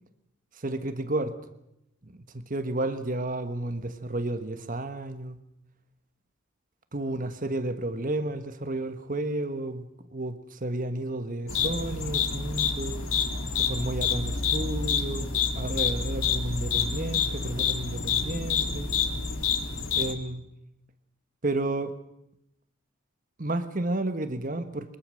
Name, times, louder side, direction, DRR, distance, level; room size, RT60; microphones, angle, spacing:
voice 1, 0.5-1.4 2.0-5.4 6.9-13.0 13.6-19.0 19.9-20.4 21.4-21.9 23.4-25.0, right 2 dB, 40° right, 1.3 m, -32 dB
sound 1, 11.5-20.1, left 6 dB, 85° left, 2.1 m, -28 dB
22.5 x 21.0 x 6.5 m
head